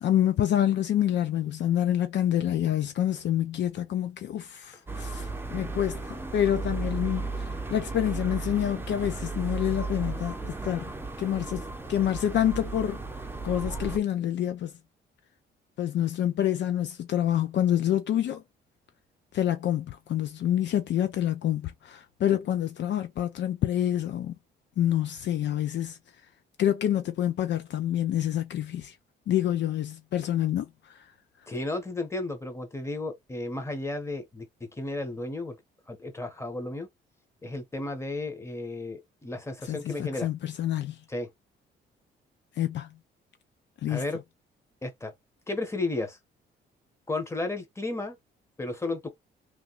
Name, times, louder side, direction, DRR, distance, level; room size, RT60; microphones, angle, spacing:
voice 1, 0.0-10.9 11.2-11.6 11.9-13.0 13.4-14.7 15.8-18.4 19.3-24.3 24.8-26.0 26.6-28.9 29.3-30.7 39.7-41.0 42.6-42.9 43.8-44.0, left 11 dB, 65° left, 0.5 m, -27 dB
sound 1, 4.9-14.0, right 3 dB, 10° right, 0.7 m, -34 dB
voice 2, 31.5-34.5 34.8-35.6 35.9-36.9 37.4-40.3 41.1-41.3 43.9-44.2 44.8-45.1 45.5-46.2 47.1-48.2 48.6-49.1, left 2 dB, 15° left, 1.3 m, -33 dB
3.4 x 2.4 x 3.0 m
cardioid pair, 90°, 20 cm